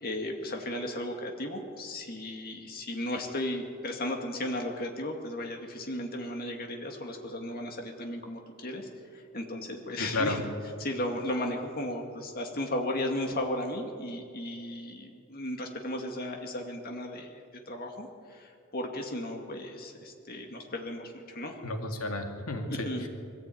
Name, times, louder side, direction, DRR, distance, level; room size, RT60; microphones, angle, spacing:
voice 1, 0.0-10.4 10.8-21.6 22.7-23.1, left 1 dB, 40° left, 2 dB, 2.1 m, -35 dB
voice 2, 10.0-10.4 21.6-23.1, left 2 dB, 75° left, 4 dB, 2.4 m, -32 dB
23.5 x 15.0 x 9.2 m, 2.5 s
head